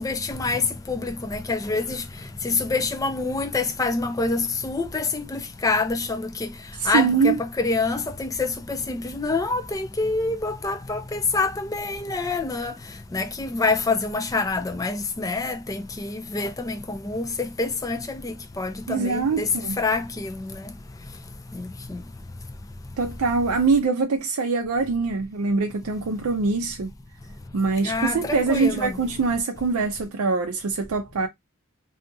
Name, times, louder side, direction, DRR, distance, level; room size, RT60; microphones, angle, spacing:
voice 1, 0.0-19.5 19.8-20.7 21.0-21.2 21.5-22.0 27.8-28.9, left 3 dB, 15° left, 0.4 m, -27 dB
voice 2, 6.7-7.4 18.9-19.8 23.0-26.9 27.5-31.3, right 4 dB, 70° right, 0.4 m, -23 dB
2.7 x 2.4 x 2.6 m
head